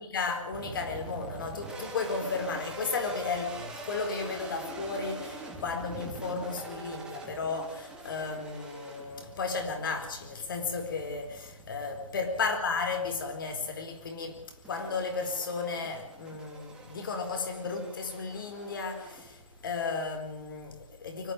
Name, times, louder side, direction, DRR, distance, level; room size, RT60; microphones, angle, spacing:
voice 1, 0.0-21.3, left 4 dB, 40° left, 4.4 m, -34 dB
sound 1, 0.5-19.7, right 3 dB, 5° right, 2.9 m, -45 dB
25.5 x 13.0 x 9.6 m
figure-of-eight pair, 160°, 17 cm